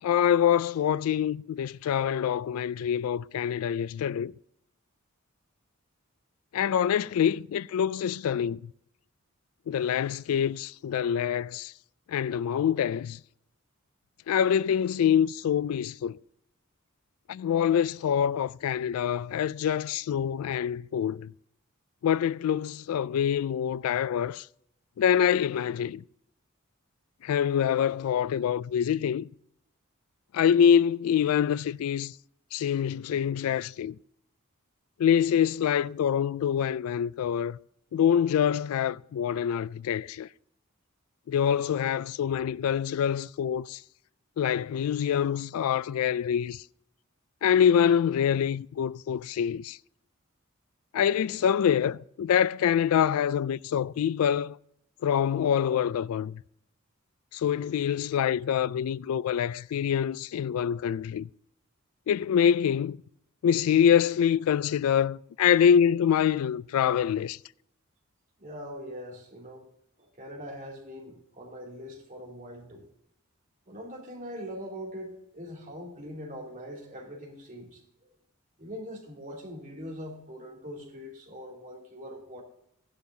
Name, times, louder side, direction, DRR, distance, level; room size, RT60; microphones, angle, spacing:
voice 1, 0.0-4.3 6.5-8.7 9.7-11.7 12.1-13.2 14.3-16.2 17.3-21.3 22.0-24.5 25.0-26.0 27.2-29.3 30.3-32.1 32.5-34.0 35.0-37.6 37.9-40.3 41.3-43.8 44.4-46.6 47.4-49.8 50.9-54.6 55.0-56.4 57.3-61.3 62.1-63.0 63.4-67.4, left 8 dB, 80° left, 0.3 m, -25 dB
voice 2, 68.4-69.7 70.0-72.9 73.7-77.8 78.6-82.4, equal, 35° right, 2.8 m, -42 dB
15.5 x 11.5 x 2.7 m
head